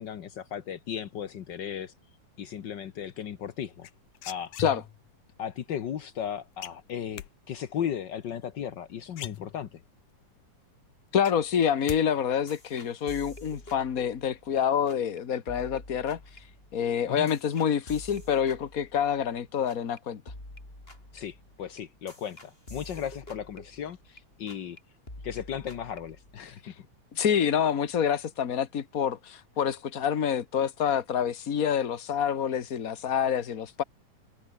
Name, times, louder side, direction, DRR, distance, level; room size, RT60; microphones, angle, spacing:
voice 1, 0.0-1.9 2.4-3.9 4.3-4.5 5.4-9.8 17.1-17.3 21.1-24.8 25.2-26.7, left 9 dB, 90° left, 0.9 m, -36 dB
sound 1, 3.8-5.1 6.6-7.3 8.7-8.8 9.1-9.9 10.4-10.5 10.8-12.0 12.3-12.8, left 13 dB, 70° left, 2.5 m, -40 dB
voice 2, 11.1-16.2 16.7-20.2 26.6-26.7 27.1-33.8, left 8 dB, 45° left, 1.1 m, -27 dB
sound 2, 12.5-14.6 14.9-15.2 15.5-19.4 19.7-20.0 20.3-24.2 24.5-24.8 25.1-26.6, left 1 dB, 15° left, 6.4 m, -48 dB
open air
omnidirectional pair, 3.7 m